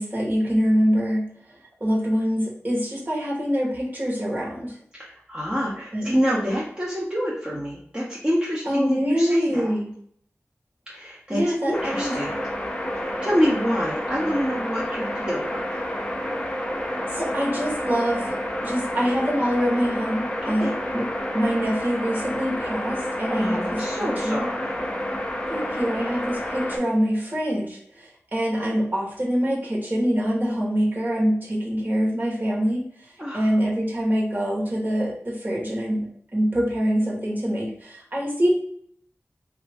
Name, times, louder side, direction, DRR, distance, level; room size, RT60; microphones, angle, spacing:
voice 1, 0.0-1.3 1.8-4.8 5.9-6.2 8.7-9.9 11.3-12.1 17.1-18.4 18.6-21.1 21.3-24.5 25.5-32.9 33.3-38.5, equal, 40° right, -4 dB, 1.2 m, -25 dB
voice 2, 5.0-9.7 10.9-12.4 12.9-15.9 20.4-20.7 23.0-24.8 33.2-33.5, equal, 20° right, -6 dB, 0.8 m, -27 dB
sound 1, 11.7-26.8, equal, 20° left, 0.6 m, -29 dB
2.9 x 2.5 x 3.4 m, 0.64 s
wide cardioid pair, 50°, 5 cm